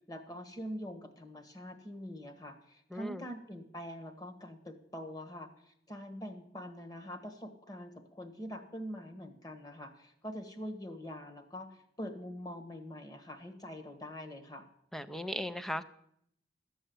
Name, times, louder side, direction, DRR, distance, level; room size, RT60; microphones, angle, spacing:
voice 1, 0.1-14.6, equal, 20° left, 5 dB, 1.5 m, -44 dB
voice 2, 2.9-3.2 14.9-15.8, left 1 dB, ahead, 12 dB, 0.5 m, -37 dB
12.5 x 7.7 x 7.9 m, 0.71 s
head